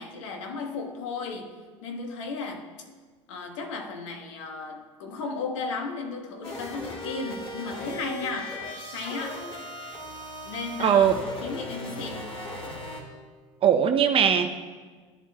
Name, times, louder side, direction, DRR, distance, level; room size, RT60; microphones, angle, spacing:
voice 1, 0.0-2.7 3.3-8.6 8.9-9.5 10.4-11.1 11.4-12.4, left 4 dB, 70° left, 2 dB, 1.2 m, -35 dB
sound 1, 6.4-13.0, left 1 dB, 35° left, 2.2 m, -38 dB
voice 2, 10.8-11.2 13.6-14.5, right 8 dB, 35° right, 7 dB, 0.6 m, -20 dB
13.0 x 11.0 x 2.2 m, 1.5 s
hypercardioid pair, 75°, 16 cm